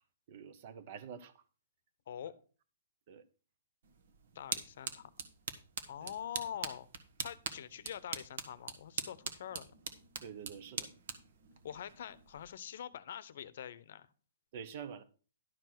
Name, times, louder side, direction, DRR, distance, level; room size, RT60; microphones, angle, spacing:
voice 1, 0.3-1.3 3.1-3.2 6.0-6.1 10.2-10.9 14.5-15.0, right 7 dB, 45° right, 1.0 m, -47 dB
sound 1, 3.8-12.5, right 6 dB, 60° right, 1.4 m, -44 dB
voice 2, 4.3-5.1 5.9-6.9 7.2-9.7 11.6-14.1, left 9 dB, 60° left, 0.8 m, -45 dB
11.5 x 4.7 x 6.0 m
hypercardioid pair, 160°, 0 cm